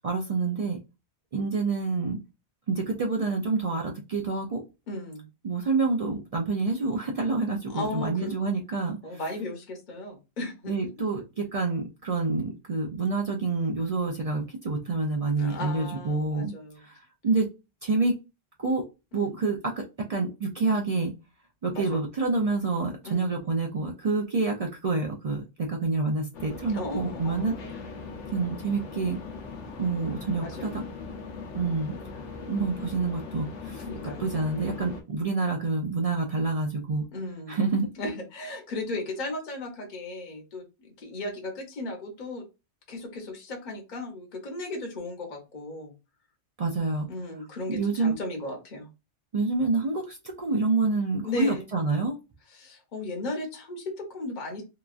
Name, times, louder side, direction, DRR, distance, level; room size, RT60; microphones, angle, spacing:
voice 1, 0.0-0.8 1.3-2.2 2.7-4.6 5.4-9.0 10.7-16.5 16.8-16.9 17.2-17.5 17.8-18.2 18.6-18.8 19.1-19.8 20.1-21.1 21.6-27.5 28.3-29.2 29.8-30.7 31.5-31.9 32.5-33.8 34.2-37.0 37.5-37.9 46.6-47.1 47.7-48.1 49.3-52.1, right 3 dB, 65° right, 0 dB, 0.3 m, -27 dB
voice 2, 4.9-5.3 7.7-8.4 9.0-10.7 15.4-16.8 19.1-19.4 21.7-22.0 23.0-23.4 26.7-27.8 30.4-30.8 33.8-34.3 37.1-37.6 38.0-42.4 42.9-45.9 47.1-48.9 51.2-51.7 52.5-54.6, left 2 dB, 45° left, 2 dB, 0.8 m, -36 dB
sound 1, 26.3-35.0, left 4 dB, 75° left, 1.0 m, -40 dB
2.9 x 2.3 x 2.4 m, 0.27 s
omnidirectional pair, 1.2 m